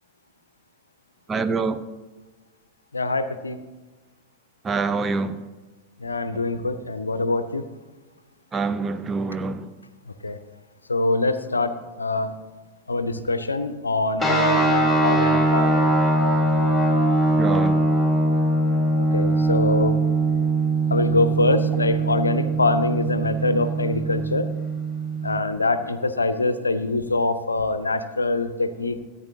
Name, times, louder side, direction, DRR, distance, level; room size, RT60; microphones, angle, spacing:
voice 1, 1.3-1.8 4.6-5.4 8.5-9.7 17.4-17.8, right 4 dB, 20° right, 0.5 m, -25 dB
voice 2, 2.9-3.6 6.0-7.6 10.2-10.4 10.9-12.3 12.9-15.9 19.0-20.0 20.9-24.5 25.2-29.0, left 2 dB, 80° left, 0.5 m, -24 dB
sound 1, 14.2-25.4, right 2 dB, ahead, 2.4 m, -21 dB
14.0 x 9.0 x 2.8 m
figure-of-eight pair, 90°, 0 cm